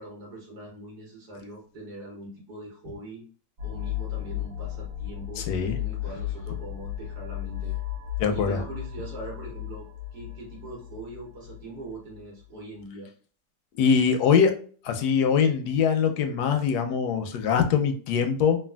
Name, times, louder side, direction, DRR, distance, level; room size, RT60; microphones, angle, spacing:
voice 1, 0.0-3.2 3.6-5.4 5.8-7.8 8.3-9.9 10.1-13.1, right 2 dB, 80° right, -3 dB, 1.5 m, -42 dB
sound 1, 3.6-12.2, left 12 dB, 65° right, 1.0 m, -35 dB
voice 2, 5.4-5.8 8.2-8.6 13.7-14.5 14.8-18.6, left 6 dB, 85° left, 6 dB, 1.1 m, -23 dB
3.3 x 2.4 x 2.2 m, 0.43 s
omnidirectional pair, 1.7 m